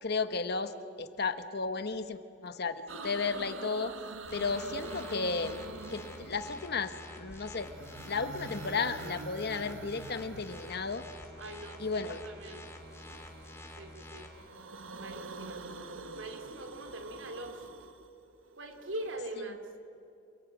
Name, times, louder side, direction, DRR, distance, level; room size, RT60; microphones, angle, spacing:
voice 1, 0.0-3.9 4.3-5.6 5.9-7.7 8.0-11.0 11.8-12.2, left 4 dB, 55° left, 10 dB, 1.3 m, -34 dB
sound 1, 2.9-6.8 7.6-11.3 12.7-13.8 14.2-19.2, right 3 dB, 90° right, 1.4 m, -46 dB
sound 2, 4.2-14.3, left 1 dB, 15° left, 3.3 m, -48 dB
voice 2, 11.4-12.7 13.7-14.3 15.0-15.6 16.1-17.7 18.6-19.7, right 1 dB, 70° right, 6 dB, 3.0 m, -42 dB
27.0 x 22.5 x 9.6 m, 2.7 s
head